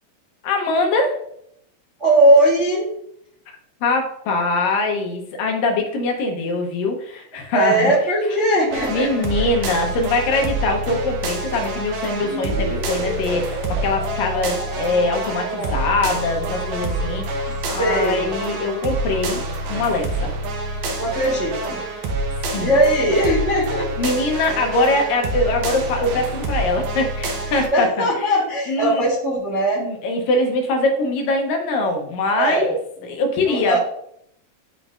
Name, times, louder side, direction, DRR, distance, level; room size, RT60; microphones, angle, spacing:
voice 1, 0.4-1.2 3.8-7.9 8.9-19.4 19.7-20.3 22.5-22.8 24.0-28.1 28.7-29.0 29.8-32.8 33.0-33.8, left 2 dB, 75° left, 2 dB, 2.6 m, -22 dB
voice 2, 2.0-2.9 7.5-9.5 15.4-15.8 17.8-18.4 21.0-21.8 22.6-24.1 27.7-29.8 32.4-32.6 33.0-33.1 33.4-33.8, right 1 dB, 45° right, -6 dB, 0.9 m, -19 dB
sound 1, 8.7-27.7, right 2 dB, 70° right, 2.1 m, -27 dB
sound 2, 12.1-20.0, equal, 20° left, 1.8 m, -35 dB
11.0 x 3.8 x 2.5 m, 0.71 s
omnidirectional pair, 4.1 m